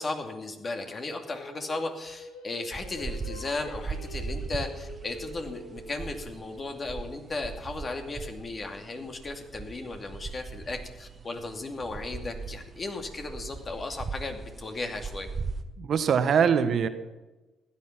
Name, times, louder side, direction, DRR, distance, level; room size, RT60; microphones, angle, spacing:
voice 1, 0.0-15.3, left 2 dB, 40° left, 4 dB, 2.5 m, -36 dB
Singing, 0.8-6.0, left 2 dB, 80° left, 1.6 m, -46 dB
sound 1, 2.7-15.6, right 4 dB, 40° right, 1.4 m, -39 dB
voice 2, 15.8-16.9, right 7 dB, 55° right, 10 dB, 1.1 m, -23 dB
15.5 x 10.5 x 5.9 m, 1.1 s
hypercardioid pair, 45°, 0 cm